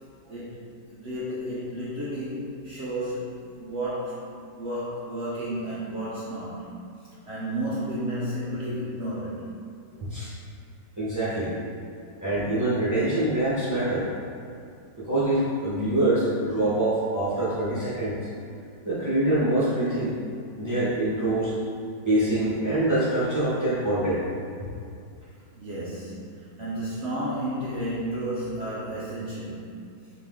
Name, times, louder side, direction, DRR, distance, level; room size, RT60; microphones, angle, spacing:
voice 1, 0.3-6.7 7.3-9.5 25.6-29.9, right 1 dB, 80° right, -8 dB, 0.6 m, -32 dB
voice 2, 11.0-11.5 12.2-14.1 15.0-18.2 18.8-20.1 20.6-21.5 22.0-24.3, right 1 dB, 20° right, -11 dB, 0.5 m, -25 dB
3.9 x 2.8 x 3.6 m, 2.4 s
omnidirectional pair, 2.0 m